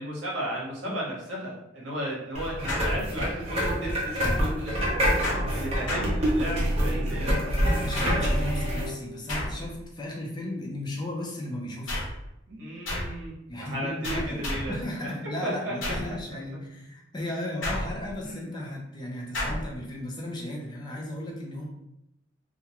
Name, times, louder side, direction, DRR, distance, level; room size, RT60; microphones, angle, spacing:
voice 1, 0.0-7.4 12.5-13.3 13.6-15.1 15.4-16.2 18.2-18.6, right 1 dB, 65° right, -4 dB, 0.8 m, -34 dB
sound 1, 2.3-8.9, equal, 35° right, 0.6 m, -26 dB
sound 2, 2.7-3.5 5.2-6.7 7.9-8.5 9.3-9.9 11.9-12.3 12.9-13.3 14.0-14.8 15.8-16.2 17.6-18.3 19.3-19.8, left 1 dB, 75° left, 0.9 m, -32 dB
Bowed string instrument, 5.0-9.9, right 2 dB, 85° right, 0.4 m, -40 dB
voice 2, 7.7-12.1 13.5-21.6, left 1 dB, 20° left, -2 dB, 0.5 m, -35 dB
2.3 x 2.2 x 2.8 m, 0.84 s
head